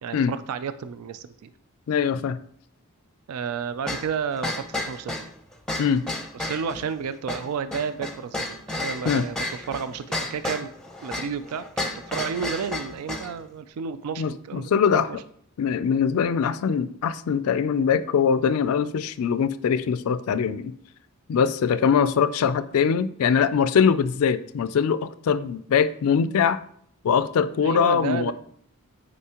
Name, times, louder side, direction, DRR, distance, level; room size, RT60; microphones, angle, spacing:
voice 1, 0.0-1.5 3.3-5.2 6.3-10.7 11.0-11.6 12.1-15.2 27.6-28.3, right 6 dB, 80° right, 12 dB, 0.4 m, -31 dB
voice 2, 1.9-2.4 5.8-6.0 9.1-9.2 14.2-15.1 15.6-20.7 21.3-26.6 27.0-28.3, left 7 dB, 75° left, 14 dB, 0.3 m, -22 dB
sound 1, 3.9-13.3, left 1 dB, 5° left, 0.6 m, -32 dB
8.2 x 5.0 x 2.9 m, 0.65 s
head